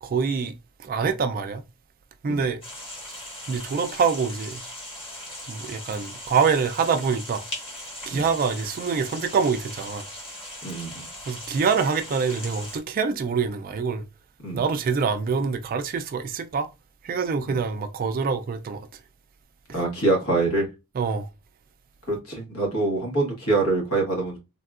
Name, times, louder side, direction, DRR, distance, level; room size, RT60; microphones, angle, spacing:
voice 1, 0.0-0.5 0.8-1.6 2.2-2.6 3.5-4.6 5.5-7.4 8.1-10.1 11.3-14.0 14.5-16.7 17.0-18.8 21.0-21.3, right 5 dB, 40° right, 0.3 m, -25 dB
sound 1, 2.6-12.8, left 1 dB, 25° left, 1.1 m, -39 dB
voice 2, 10.6-11.1 14.4-14.6 17.5-17.6 19.7-20.7 22.1-24.4, right 2 dB, 75° left, 1.2 m, -25 dB
3.4 x 2.3 x 2.4 m
head